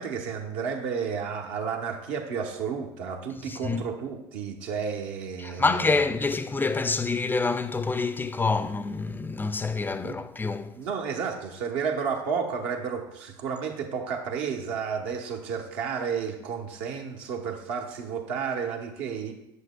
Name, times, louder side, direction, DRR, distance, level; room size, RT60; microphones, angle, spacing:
voice 1, 0.0-5.9 9.9-10.2 10.7-19.3, right 6 dB, 65° right, 1.0 m, -32 dB
voice 2, 3.5-3.8 5.4-10.7, left 3 dB, 15° left, 0.4 m, -27 dB
8.2 x 7.1 x 2.3 m
hypercardioid pair, 65°, 14 cm